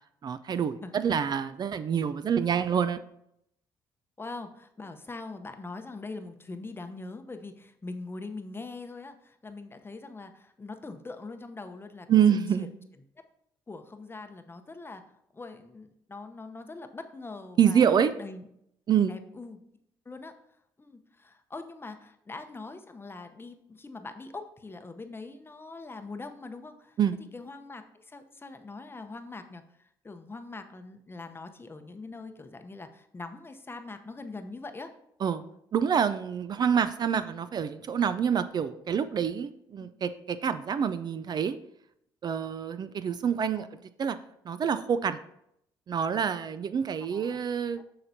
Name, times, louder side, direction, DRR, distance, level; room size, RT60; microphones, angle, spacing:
voice 1, 0.2-3.0 12.1-12.7 17.6-18.1 18.9-19.2 27.0-27.1 35.2-35.4 35.7-41.6 42.2-43.7 44.0-44.2 44.5-45.2 45.9-47.8, right 8 dB, 45° right, 12 dB, 0.4 m, -26 dB
voice 2, 4.2-12.7 13.7-15.0 15.3-17.8 18.2-18.5 19.1-19.6 20.1-20.3 20.8-27.0 27.3-34.9 43.5-43.7 47.1-47.4, left 3 dB, 25° left, 7 dB, 0.8 m, -42 dB
7.6 x 5.9 x 2.7 m, 0.75 s
supercardioid pair, 60°, 10 cm